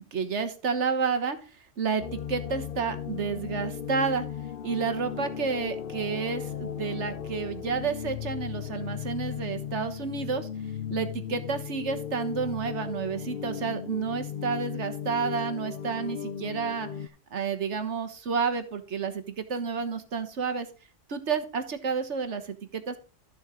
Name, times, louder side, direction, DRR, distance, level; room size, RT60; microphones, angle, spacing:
voice 1, 0.1-1.4 1.8-4.3 4.6-10.5 10.9-16.9 17.3-20.7 21.1-23.0, right 5 dB, 70° right, 9 dB, 1.6 m, -30 dB
sound 1, 2.0-17.1, left 8 dB, 55° left, 0.8 m, -36 dB
12.5 x 7.1 x 3.8 m, 0.36 s
omnidirectional pair, 1.2 m